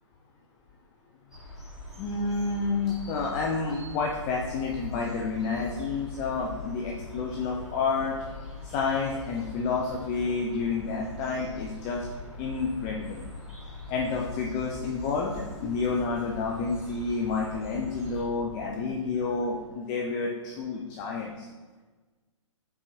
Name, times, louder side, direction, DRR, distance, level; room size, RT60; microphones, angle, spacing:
sound 1, 1.3-18.2, left 2 dB, ahead, 1.5 m, -43 dB
sound 2, 1.7-19.9, left 1 dB, 80° left, 0.9 m, -46 dB
voice 1, 2.0-8.1 8.6-12.0 12.4-13.2 13.9-21.5, left 4 dB, 20° left, -2 dB, 0.3 m, -30 dB
4.9 x 3.4 x 3.0 m, 1.3 s
hypercardioid pair, 130°, 16 cm